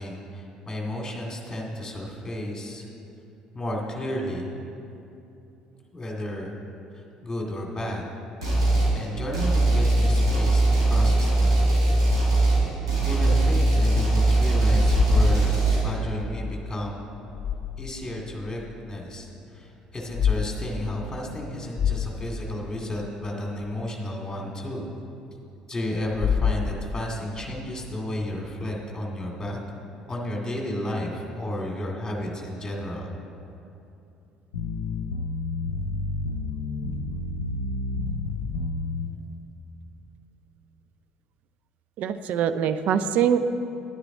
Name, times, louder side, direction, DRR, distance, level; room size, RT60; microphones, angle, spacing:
voice 1, 0.0-2.9 3.5-4.5 5.9-6.6 6.9-8.1 8.9-11.5 13.0-17.0 17.8-24.9 25.7-29.6 30.1-33.1, left 1 dB, 15° left, -1 dB, 2.2 m, -32 dB
sound 1, 8.4-8.9 9.3-15.8, right 2 dB, 80° right, 2.4 m, -20 dB
sound 2, 12.7-14.1 14.4-16.1 17.1-18.1 18.6-18.7 19.9-20.4 20.8-20.9 21.4-21.5 21.7-23.0 26.0-27.1, left 7 dB, 35° left, 0.7 m, -28 dB
sound 3, 34.5-39.1, left 3 dB, 75° left, 0.6 m, -30 dB
voice 2, 42.0-43.4, right 8 dB, 55° right, 11 dB, 0.4 m, -23 dB
10.0 x 9.7 x 3.9 m, 2.7 s
figure-of-eight pair, 55°, 3 cm